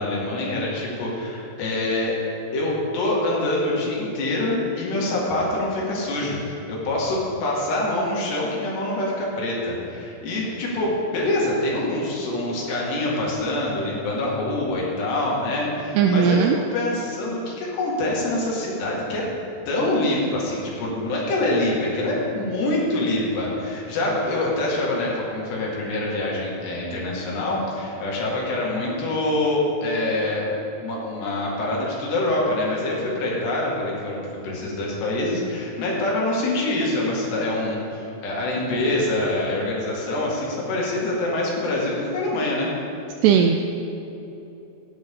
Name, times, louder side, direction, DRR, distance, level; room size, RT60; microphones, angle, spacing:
voice 1, 0.0-2.2 2.5-19.3 19.7-30.5 30.8-42.7, left 1 dB, 65° left, -4 dB, 4.2 m, -25 dB
voice 2, 16.0-16.6 43.2-43.7, right 7 dB, 85° right, 4 dB, 2.4 m, -17 dB
18.5 x 9.2 x 3.7 m, 3.0 s
omnidirectional pair, 5.3 m